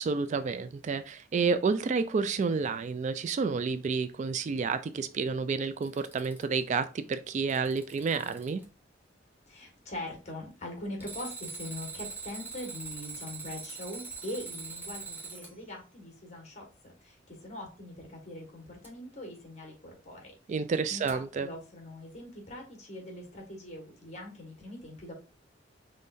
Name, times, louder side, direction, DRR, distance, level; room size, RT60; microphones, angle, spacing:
voice 1, 0.0-8.6 20.5-21.5, right 5 dB, 40° right, 12 dB, 0.3 m, -30 dB
Alarm, 5.6-6.6 7.3-8.6 11.0-15.5 18.8-18.9 21.1-21.2, right 4 dB, 10° right, 1.1 m, -42 dB
voice 2, 9.5-20.3 20.9-25.1, left 1 dB, 40° left, 2 dB, 1.7 m, -42 dB
5.4 x 3.2 x 2.6 m, 0.33 s
head